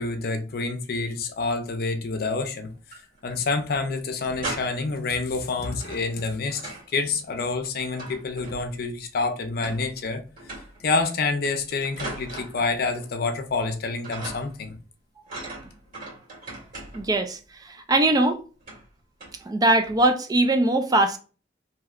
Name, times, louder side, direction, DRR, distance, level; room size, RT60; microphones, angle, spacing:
voice 1, 0.0-2.7 3.2-10.2 10.8-14.7, left 3 dB, 60° left, 0.6 m, -27 dB
sound 1, 2.7-3.4 3.7-3.8 4.1-5.0 5.6-6.9 7.2-8.9 9.6-10.1 10.4-10.9 11.4-13.1 13.4-13.8 14.0-14.7 15.3-17.2 18.0-18.2 18.6-18.9 19.2-19.5 19.8-20.1, right 2 dB, 50° right, 1.7 m, -39 dB
voice 2, 16.9-17.4 17.6-18.4 19.5-21.2, right 2 dB, 20° right, 0.4 m, -21 dB
3.1 x 2.8 x 2.4 m
head